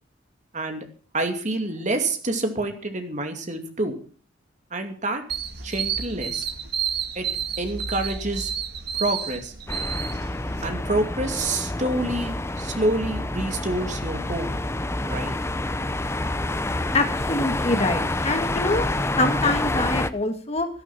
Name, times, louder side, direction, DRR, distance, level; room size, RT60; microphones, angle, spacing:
voice 1, 0.5-0.8 1.1-4.0 4.7-5.2 5.6-6.5 7.1-7.3 7.6-8.5 8.9-9.5 10.6-14.5 15.0-15.3, right 2 dB, 40° right, 5 dB, 2.5 m, -27 dB
sound 1, 5.3-10.7, right 7 dB, 55° right, 1.7 m, -30 dB
sound 2, 9.7-20.1, left 2 dB, 15° left, 0.6 m, -28 dB
voice 2, 16.9-18.9 19.2-20.7, left 2 dB, 30° left, 7 dB, 1.8 m, -24 dB
14.0 x 12.0 x 5.9 m, 0.40 s
head